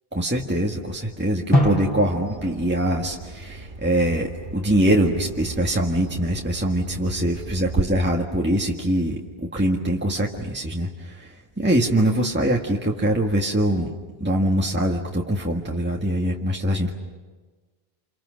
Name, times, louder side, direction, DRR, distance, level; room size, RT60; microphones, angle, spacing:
voice 1, 0.1-9.2 9.5-11.3 11.6-13.9 14.2-16.9, right 1 dB, 10° right, -1 dB, 1.7 m, -23 dB
Drum, 1.5-4.2, equal, 25° left, 2.7 m, -26 dB
Bird vocalization bird call bird song, 2.1-7.8, right 3 dB, 55° right, 1.6 m, -35 dB
29.0 x 28.0 x 6.4 m, 1.3 s
omnidirectional pair, 1.0 m